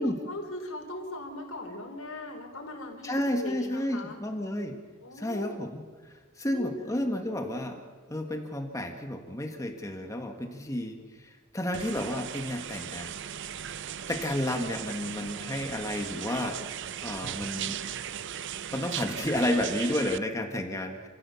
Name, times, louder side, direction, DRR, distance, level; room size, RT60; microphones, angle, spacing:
voice 1, 0.0-4.2 5.0-5.8 6.5-7.7, left 1 dB, 80° left, 1 dB, 4.6 m, -39 dB
voice 2, 3.0-4.8 5.2-5.8 6.4-7.8 8.1-13.1 14.1-17.8 18.7-21.1, left 1 dB, 15° left, 4 dB, 1.7 m, -31 dB
sound 1, 11.7-20.2, right 9 dB, 60° right, 0.6 m, -37 dB
28.0 x 15.5 x 7.0 m, 1.5 s
head